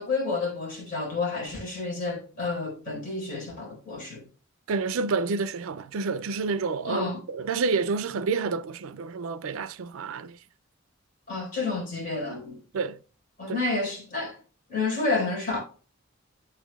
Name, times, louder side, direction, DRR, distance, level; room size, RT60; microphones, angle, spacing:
voice 1, 0.0-4.2 6.8-7.2 11.3-12.6 13.4-14.4 14.7-15.6, left 3 dB, 40° left, 4.3 m, -30 dB
voice 2, 4.7-10.4 12.7-13.0 13.5-13.6, right 4 dB, 75° right, 0.4 m, -29 dB
8.4 x 8.2 x 2.3 m
head